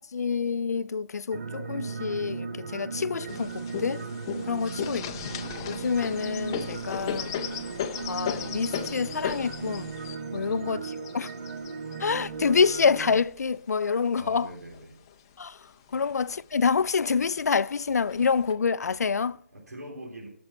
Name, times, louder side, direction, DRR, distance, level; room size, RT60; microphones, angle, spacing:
voice 1, 0.1-4.0 4.5-5.0 5.7-7.3 8.1-9.9 10.3-10.8 11.1-11.3 12.0-14.5 15.4-15.6 15.9-19.4, left 5 dB, 85° left, 0.4 m, -27 dB
sound 1, 1.3-13.2, right 5 dB, 55° right, 0.9 m, -37 dB
sound 2, 3.3-13.5 14.2-15.1 15.5-15.6 15.9-16.6 17.4-17.5 18.1-18.5, left 8 dB, 15° left, 0.4 m, -36 dB
voice 2, 4.5-5.1 10.3-10.8 14.1-14.9 19.5-20.3, right 1 dB, 90° right, 3.4 m, -43 dB
13.0 x 6.2 x 5.5 m
hypercardioid pair, 165°, 9 cm